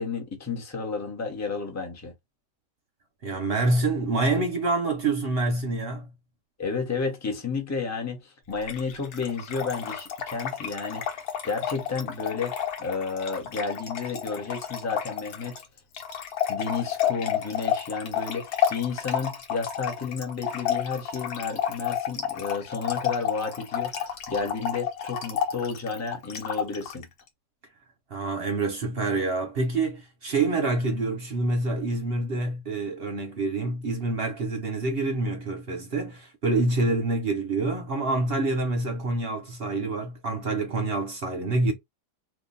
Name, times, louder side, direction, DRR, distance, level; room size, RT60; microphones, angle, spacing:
voice 1, 0.0-2.1 6.6-15.6 16.5-27.1, left 5 dB, 15° left, 0.7 m, -32 dB
voice 2, 3.2-6.1 28.1-41.7, right 2 dB, 45° right, 0.9 m, -27 dB
Trickle dribble / Fill (with liquid), 8.6-27.0, left 9 dB, 70° left, 1.4 m, -31 dB
2.9 x 2.5 x 3.8 m
omnidirectional pair, 1.8 m